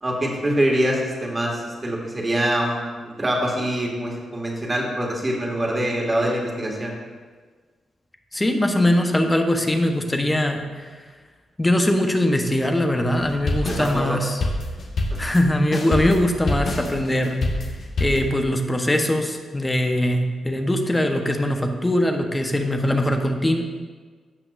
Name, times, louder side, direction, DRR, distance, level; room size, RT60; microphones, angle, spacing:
voice 1, 0.0-6.9 13.7-14.2, right 1 dB, 25° right, -1 dB, 2.2 m, -24 dB
voice 2, 8.3-10.9 11.6-14.4 15.2-17.4 18.0-23.6, left 1 dB, 20° left, 4 dB, 1.1 m, -21 dB
sound 1, 13.2-18.3, left 2 dB, 65° left, 1.5 m, -26 dB
15.5 x 5.8 x 2.7 m, 1.5 s
supercardioid pair, 55°, 0 cm